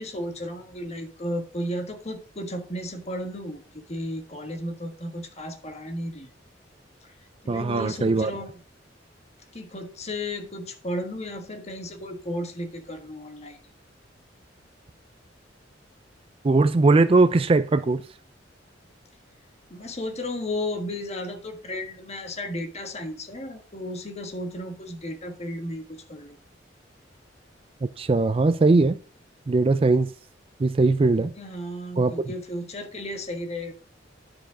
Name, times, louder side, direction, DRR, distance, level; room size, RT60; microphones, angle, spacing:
voice 1, 0.0-6.3 7.4-8.5 9.5-13.6 19.7-26.4 31.1-33.7, left 1 dB, 35° left, 1.5 m, -34 dB
voice 2, 7.5-8.3 16.4-18.0 28.0-29.0 29.5-30.1 30.6-31.3 32.0-32.3, right 3 dB, 30° right, 0.4 m, -20 dB
10.5 x 4.9 x 5.0 m
head